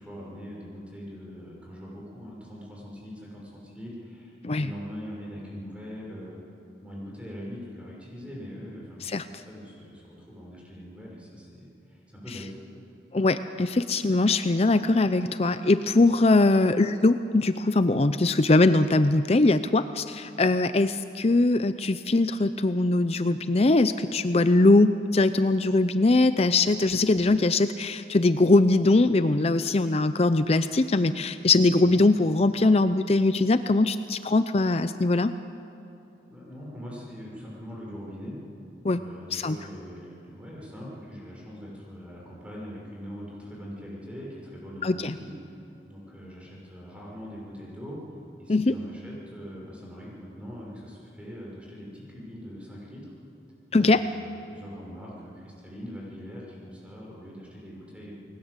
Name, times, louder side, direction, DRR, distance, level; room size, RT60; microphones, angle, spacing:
voice 1, 0.0-6.4 6.8-12.5 31.9-32.1 36.3-38.4 38.9-48.0 48.4-53.1 53.7-58.1, equal, 5° right, -4 dB, 6.0 m, -42 dB
voice 2, 13.1-35.3 38.8-39.0 39.3-39.6 44.8-45.1 48.5-48.7 53.7-54.0, left 2 dB, 35° left, 11 dB, 0.5 m, -21 dB
29.5 x 20.5 x 8.1 m, 2.9 s
head